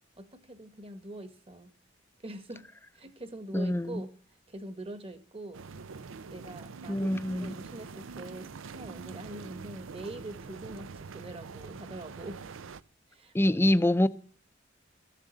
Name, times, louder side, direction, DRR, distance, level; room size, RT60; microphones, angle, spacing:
voice 1, 0.2-1.7 2.2-2.6 2.9-4.1 4.5-5.6 6.3-12.4 13.1-13.5, right 1 dB, 30° right, 1.4 m, -43 dB
voice 2, 3.5-4.0 6.9-7.5 13.3-14.1, left 1 dB, 10° left, 0.6 m, -25 dB
sound 1, 5.5-12.8, right 5 dB, 85° right, 0.5 m, -44 dB
14.0 x 7.5 x 9.0 m
head